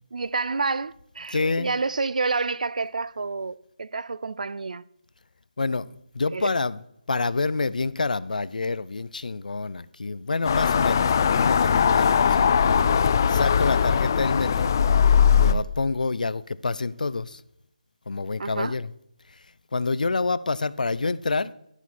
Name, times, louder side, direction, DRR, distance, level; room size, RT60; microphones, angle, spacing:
voice 1, 0.1-4.8 6.3-6.5 18.4-18.8, right 4 dB, 65° right, 0.4 m, -29 dB
voice 2, 1.3-1.7 5.6-6.8 7.1-12.7 13.3-14.8 15.3-17.4 18.1-18.9 19.7-21.5, left 3 dB, 75° left, 0.6 m, -27 dB
sound 1, 10.5-15.5, left 7 dB, 25° left, 0.4 m, -20 dB
12.0 x 10.5 x 4.2 m
figure-of-eight pair, 170°, 4 cm